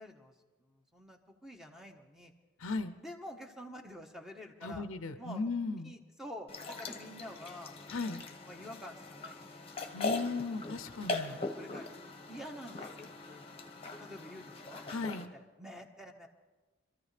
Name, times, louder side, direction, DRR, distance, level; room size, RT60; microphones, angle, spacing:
voice 1, 0.0-2.3 3.0-4.9 5.2-5.5 5.8-7.8 8.5-9.5 11.2-11.9 12.2-13.5 14.0-14.8 15.3-16.3, equal, ahead, 3 dB, 1.2 m, -48 dB
voice 2, 2.6-2.9 4.6-5.9 7.9-8.2 9.9-11.4 14.9-15.3, left 3 dB, 70° left, 11 dB, 0.7 m, -36 dB
sound 1, 6.5-15.3, left 3 dB, 25° left, 1.1 m, -41 dB
25.5 x 14.0 x 3.3 m, 1.3 s
head